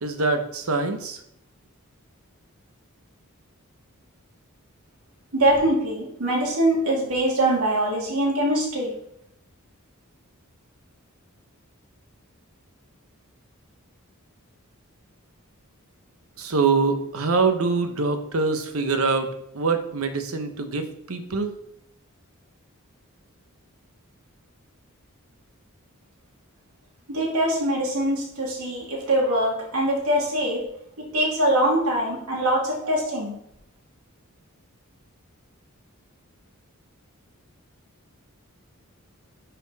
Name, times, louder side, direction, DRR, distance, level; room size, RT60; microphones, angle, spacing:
voice 1, 0.0-1.2 16.4-21.5, right 4 dB, 70° right, 7 dB, 1.0 m, -24 dB
voice 2, 5.3-8.9 27.1-30.7 31.0-33.3, right 1 dB, 90° right, -4 dB, 2.5 m, -23 dB
10.0 x 4.4 x 4.1 m, 0.74 s
head